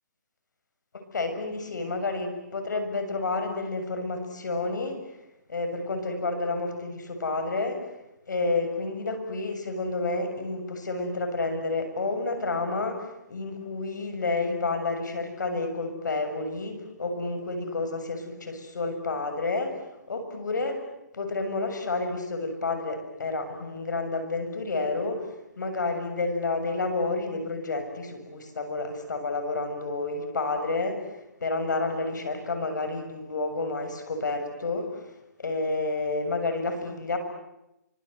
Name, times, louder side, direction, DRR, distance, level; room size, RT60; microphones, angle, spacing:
voice 1, 1.1-5.0 5.5-7.8 8.3-19.7 20.1-20.8 21.1-25.2 25.6-31.0 31.4-34.9 35.4-37.2, left 3 dB, 80° left, 7 dB, 7.1 m, -30 dB
30.0 x 25.0 x 8.0 m, 0.90 s
hypercardioid pair, 160°, 10 cm